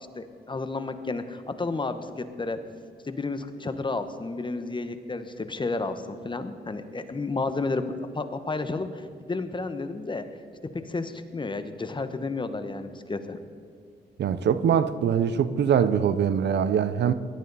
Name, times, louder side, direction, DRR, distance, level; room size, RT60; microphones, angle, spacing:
voice 1, 0.1-2.6 3.0-10.2 10.9-13.5, left 3 dB, 25° left, 9 dB, 1.1 m, -31 dB
voice 2, 14.2-17.1, right 8 dB, 70° right, 14 dB, 0.7 m, -23 dB
17.5 x 12.0 x 4.1 m, 2.3 s
cardioid pair, 80°, 19 cm